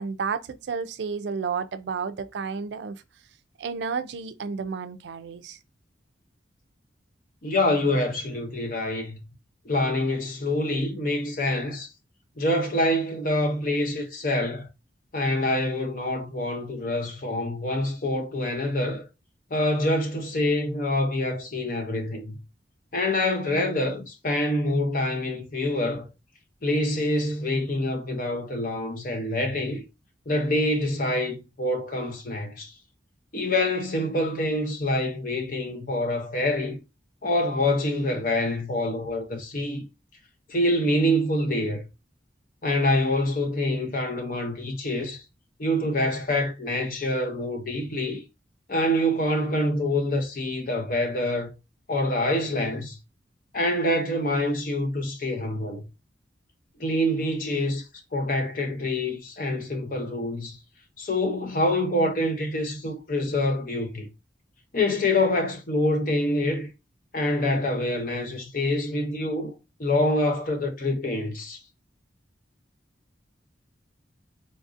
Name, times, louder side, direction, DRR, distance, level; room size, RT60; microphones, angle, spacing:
voice 1, 0.0-2.9 3.6-5.6, right 5 dB, 70° right, 0.4 m, -31 dB
voice 2, 7.4-9.2 9.6-11.9 12.4-14.7 15.1-19.1 19.5-22.3 22.9-26.1 26.6-29.8 30.3-32.7 33.3-36.8 37.2-39.9 40.5-41.8 42.6-45.2 45.6-48.2 48.7-51.5 51.9-53.0 53.5-55.8 56.8-57.8 58.1-60.6 61.0-64.1 64.7-66.7 67.1-69.5 69.8-71.6, left 1 dB, 45° left, 0.6 m, -26 dB
3.9 x 2.6 x 2.4 m
head